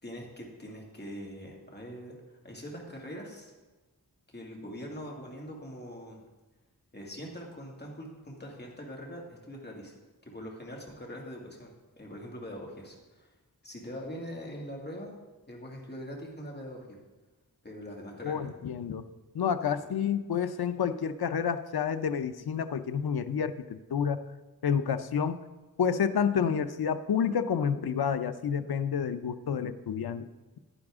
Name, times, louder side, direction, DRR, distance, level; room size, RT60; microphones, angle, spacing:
voice 1, 0.0-3.5 4.3-6.2 6.9-10.0 10.2-13.3 13.6-15.1 15.5-17.0 17.6-18.5, equal, 30° left, -1 dB, 2.2 m, -43 dB
voice 2, 18.2-19.0 19.3-24.2 24.6-25.4 25.8-30.2, left 7 dB, 90° left, 11 dB, 0.6 m, -29 dB
10.5 x 10.0 x 3.6 m, 1.2 s
wide cardioid pair, 95°, 36 cm